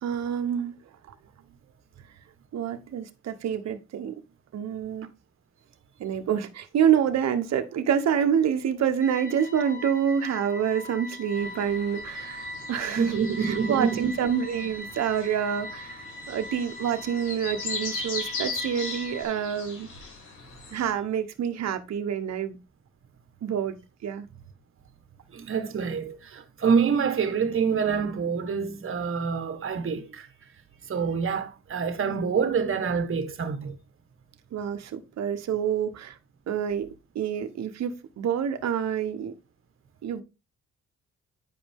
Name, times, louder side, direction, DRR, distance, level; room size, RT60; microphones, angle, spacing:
voice 1, 0.0-0.7 2.5-4.1 4.5-5.1 6.0-13.1 13.4-19.9 20.7-22.6 23.4-23.8 24.0-24.3 34.5-36.1 36.5-36.9 37.1-39.3 40.0-40.2, right 8 dB, 60° right, 1.1 m, -27 dB
sound 1, 9.0-19.2, left 1 dB, 25° left, 1.5 m, -40 dB
sound 2, 11.3-20.9, left 4 dB, 85° left, 5.0 m, -39 dB
voice 2, 12.9-14.2 25.3-30.3 30.9-33.7, right 6 dB, 45° right, 1.4 m, -26 dB
9.6 x 5.1 x 3.6 m
cardioid pair, 90°, 30 cm